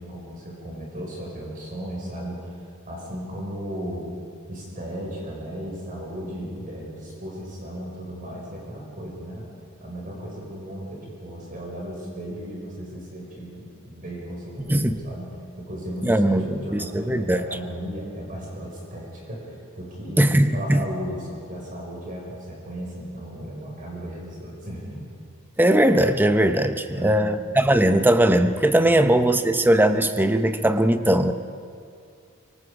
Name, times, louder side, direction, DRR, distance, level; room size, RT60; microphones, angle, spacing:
voice 1, 0.0-2.6 2.9-4.1 4.5-9.5 9.8-15.3 15.6-20.2 20.5-25.1 26.9-27.3 28.8-29.4, equal, 40° right, -3 dB, 5.3 m, -35 dB
voice 2, 16.0-17.4 20.2-20.8 25.6-31.3, right 1 dB, 10° right, 8 dB, 0.8 m, -19 dB
25.0 x 24.5 x 4.9 m, 2.3 s
head